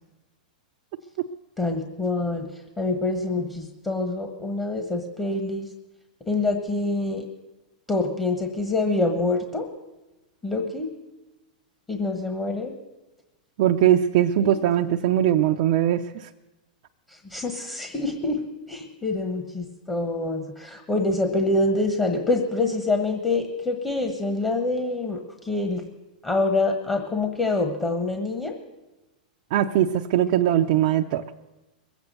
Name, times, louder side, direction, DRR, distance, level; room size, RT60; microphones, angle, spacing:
voice 1, 1.6-5.7 6.3-7.3 7.9-9.7 10.4-10.9 11.9-12.7 17.1-25.9 26.2-28.5, left 2 dB, 15° left, 5 dB, 1.3 m, -26 dB
voice 2, 13.6-16.3 29.5-31.2, right 11 dB, 55° right, 2 dB, 0.6 m, -21 dB
21.5 x 8.2 x 6.7 m, 1.0 s
hypercardioid pair, 120°, 5 cm